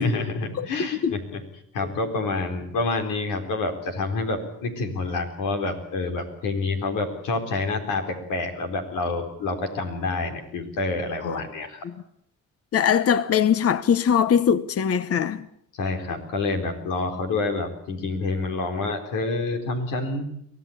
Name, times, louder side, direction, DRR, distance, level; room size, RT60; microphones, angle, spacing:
voice 1, 0.0-1.4 1.7-11.8 15.7-20.2, left 3 dB, 90° left, 4.1 m, -28 dB
voice 2, 0.6-1.1 11.2-11.4 11.8-11.9 12.7-15.4, left 8 dB, 50° left, 1.1 m, -22 dB
24.5 x 16.5 x 8.6 m
cardioid pair, 90°, 30 cm